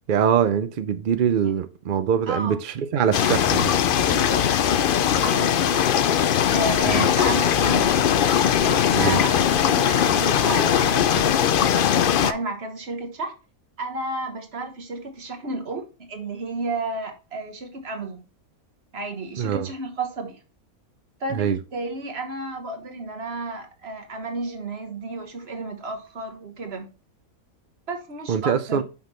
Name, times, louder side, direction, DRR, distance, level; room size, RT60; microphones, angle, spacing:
voice 1, 0.1-3.7 6.9-7.1 8.9-9.2 19.4-19.7 21.4-21.6 28.3-28.8, right 8 dB, 65° right, 0.5 m, -23 dB
voice 2, 2.3-2.6 4.1-5.9 6.5-8.1 8.6-13.3 13.8-18.2 18.9-20.4 21.2-26.9 27.9-28.8, right 3 dB, 45° right, 1.5 m, -32 dB
sound 1, 3.1-12.3, left 9 dB, 80° left, 0.4 m, -20 dB
5.9 x 5.7 x 4.3 m
omnidirectional pair, 1.5 m